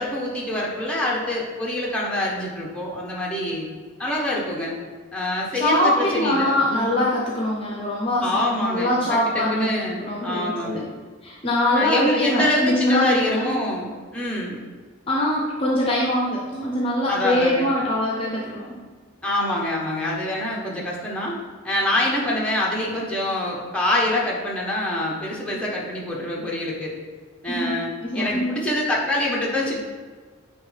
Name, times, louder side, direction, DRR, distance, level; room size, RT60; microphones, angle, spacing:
voice 1, 0.0-3.7 4.0-4.7 5.1-7.0 8.2-10.9 11.7-14.6 17.1-17.7 19.2-21.4 21.6-26.9 27.4-27.9 28.1-29.8, left 1 dB, 5° left, -4 dB, 1.0 m, -25 dB
voice 2, 5.6-9.7 10.0-10.8 11.2-13.6 15.1-18.6 27.5-28.6, left 1 dB, 25° left, -4 dB, 0.7 m, -23 dB
8.9 x 3.2 x 3.3 m, 1.5 s
head